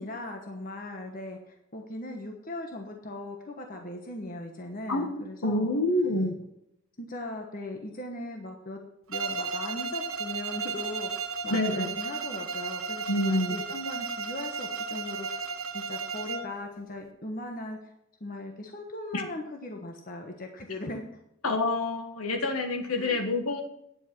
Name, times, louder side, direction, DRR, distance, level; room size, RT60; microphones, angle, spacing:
voice 1, 0.0-5.7 7.0-8.8 9.1-17.9 18.2-21.0 23.0-23.2, left 1 dB, 40° left, 3 dB, 1.2 m, -39 dB
voice 2, 4.9-6.3 11.5-11.9 13.1-13.6 19.1-19.2 21.4-23.6, left 2 dB, 85° left, 4 dB, 1.5 m, -27 dB
Bowed string instrument, 9.1-16.6, right 4 dB, 75° right, 1.0 m, -34 dB
9.9 x 8.0 x 6.0 m, 0.79 s
head